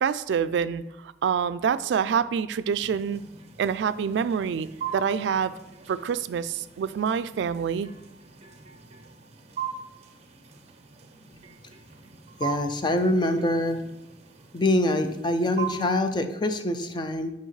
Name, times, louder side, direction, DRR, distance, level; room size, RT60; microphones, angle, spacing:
voice 1, 0.0-3.2 3.6-4.7 4.9-5.5 5.9-7.9, right 7 dB, 80° right, 15 dB, 0.3 m, -26 dB
sound 1, 2.7-15.9, right 7 dB, 35° right, 0.6 m, -41 dB
voice 2, 12.4-13.8 14.5-17.3, left 1 dB, 25° left, 7 dB, 0.5 m, -25 dB
7.8 x 5.1 x 3.2 m, 0.96 s
head